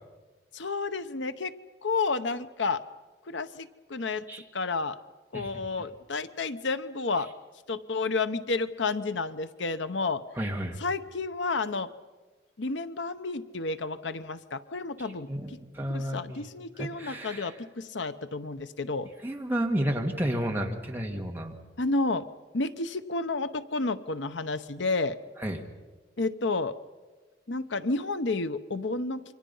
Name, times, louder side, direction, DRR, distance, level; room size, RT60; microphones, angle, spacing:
voice 1, 0.5-1.5 1.8-2.8 3.3-4.3 4.5-5.0 5.3-7.3 7.7-10.2 10.8-11.9 12.6-15.6 15.9-19.1 21.8-22.3 22.5-25.2 26.2-26.7 27.5-29.3, left 3 dB, 90° left, 12 dB, 0.9 m, -31 dB
voice 2, 10.4-10.8 15.0-15.5 15.7-16.4 16.8-17.5 19.2-21.5 25.4-25.6, equal, 10° right, 1 dB, 2.1 m, -31 dB
27.5 x 24.5 x 5.6 m, 1.3 s
head